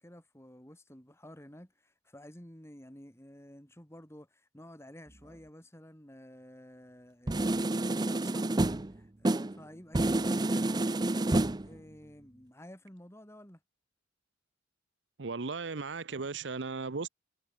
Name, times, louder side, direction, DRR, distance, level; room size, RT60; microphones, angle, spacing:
voice 1, 0.0-11.1 11.6-13.6, equal, 15° left, 3.8 m, -52 dB
sound 1, 7.3-9.0 9.2-9.6 9.9-11.8, right 2 dB, 20° right, 0.6 m, -29 dB
voice 2, 15.2-17.1, right 4 dB, 65° right, 0.8 m, -36 dB
head